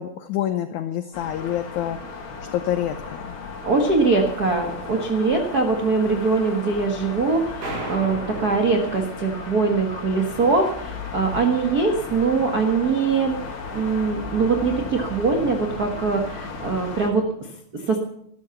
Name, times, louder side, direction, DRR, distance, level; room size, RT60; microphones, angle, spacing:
voice 1, 0.0-3.4, left 11 dB, 75° left, 9 dB, 1.7 m, -28 dB
sound 1, 1.1-17.1, left 4 dB, 40° left, 2.4 m, -35 dB
voice 2, 3.6-13.4 13.7-18.0, right 4 dB, 70° right, 3 dB, 0.9 m, -22 dB
sound 2, 7.6-10.0, right 1 dB, 90° right, 9.0 m, -35 dB
13.0 x 12.5 x 7.1 m, 0.72 s
omnidirectional pair, 4.3 m